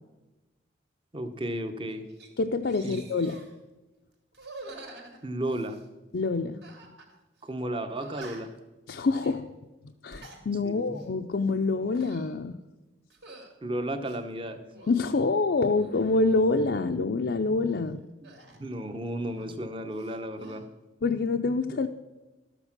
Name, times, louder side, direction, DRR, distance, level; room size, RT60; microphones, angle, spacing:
voice 1, 1.1-2.0 2.8-3.0 5.2-5.8 7.4-8.5 10.6-11.0 13.6-14.6 18.6-20.6 21.7-21.8, right 1 dB, 30° right, 9 dB, 0.8 m, -33 dB
sound 1, 1.4-1.6 1.9-2.3 2.6-3.5 4.3-5.9 6.6-7.1 7.4-7.5 8.0-8.6 9.1-9.4 9.9-10.4 10.9-11.1 11.8-12.4 13.1-13.5 14.0-15.0 15.5-16.4 18.2-19.7 19.9-20.6, right 2 dB, 65° right, 2.4 m, -48 dB
voice 2, 2.4-3.4 6.1-6.6 8.9-9.5 10.0-12.6 14.9-18.0 21.0-21.9, left 3 dB, 65° left, 4 dB, 0.5 m, -26 dB
12.5 x 8.0 x 5.9 m, 1.1 s
head